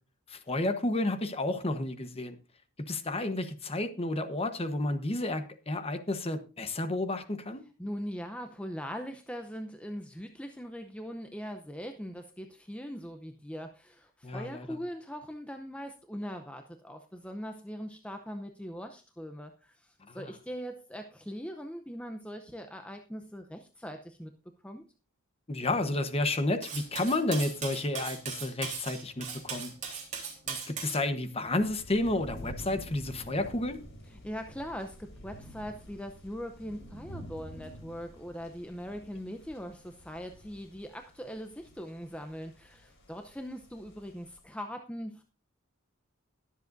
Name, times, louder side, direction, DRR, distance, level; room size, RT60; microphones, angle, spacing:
voice 1, 0.3-2.4 2.9-7.6 14.2-14.8 20.1-20.3 25.5-29.7 30.5-33.8, left 2 dB, 30° left, 1.0 m, -31 dB
voice 2, 7.8-24.3 24.6-24.8 34.1-45.2, equal, 5° left, 0.6 m, -41 dB
Cutlery silverware, 26.6-31.0, right 6 dB, 35° right, 3.6 m, -38 dB
sound 1, 31.4-44.4, equal, 65° left, 4.1 m, -49 dB
21.5 x 7.5 x 2.6 m
head